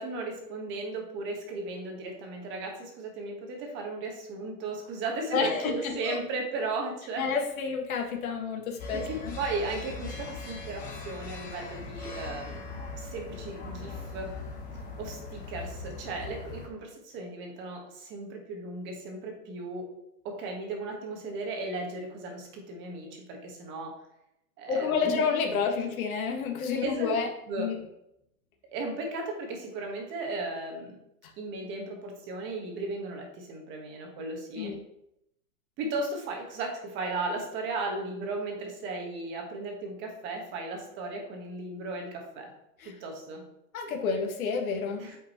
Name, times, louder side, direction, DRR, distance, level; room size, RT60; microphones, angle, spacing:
voice 1, 0.0-7.3 8.9-12.6 12.9-14.3 15.0-19.9 20.2-24.0 24.6-25.4 26.8-27.7 28.7-31.0 31.4-34.7 35.8-42.5 42.8-43.4 45.0-45.2, right 3 dB, 25° right, 1 dB, 1.4 m, -36 dB
voice 2, 5.3-6.2 7.2-9.4 24.7-27.3 27.6-27.8 34.6-34.8 42.8-42.9 43.7-45.1, left 5 dB, 60° left, 2 dB, 1.8 m, -29 dB
sound 1, 8.8-16.7, left 3 dB, 15° left, 1.1 m, -40 dB
8.9 x 5.2 x 3.0 m, 0.81 s
hypercardioid pair, 150°, 47 cm